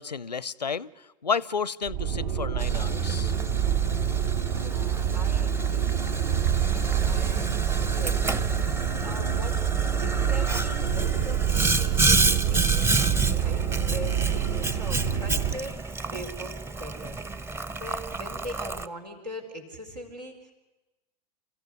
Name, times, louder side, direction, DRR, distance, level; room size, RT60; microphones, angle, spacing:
voice 1, 0.0-3.3 6.6-6.8, left 6 dB, 80° left, 23 dB, 0.7 m, -32 dB
sound 1, 1.9-15.5, right 9 dB, 60° right, 2.0 m, -26 dB
Boiling, 2.6-18.9, right 2 dB, 10° right, 0.8 m, -30 dB
voice 2, 4.5-6.5 7.0-7.6 7.9-8.3 8.9-9.6 10.0-15.8 16.1-17.2 17.7-20.5, equal, 85° right, 2 dB, 4.6 m, -41 dB
29.0 x 14.5 x 9.7 m, 1.1 s
figure-of-eight pair, 90°, 21 cm